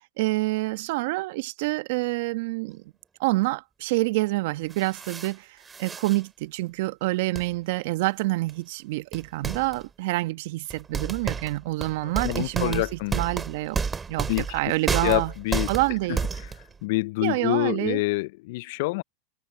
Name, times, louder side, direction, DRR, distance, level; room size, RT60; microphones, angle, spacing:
voice 1, 0.0-2.8 3.2-12.8 13.1-13.8 14.1-15.3 15.7-16.2 17.2-18.0, right 21 dB, 65° right, 1.1 m, -27 dB
sound 1, 4.7-5.3 5.6-6.2 7.3-7.5 8.5-8.6 9.1-9.8 10.7-16.7, right 5 dB, 20° right, 3.0 m, -31 dB
voice 2, 12.2-13.1 14.3-14.5 15.0-15.7 16.8-19.0, left 22 dB, 65° left, 0.5 m, -26 dB
hypercardioid pair, 95°, 0 cm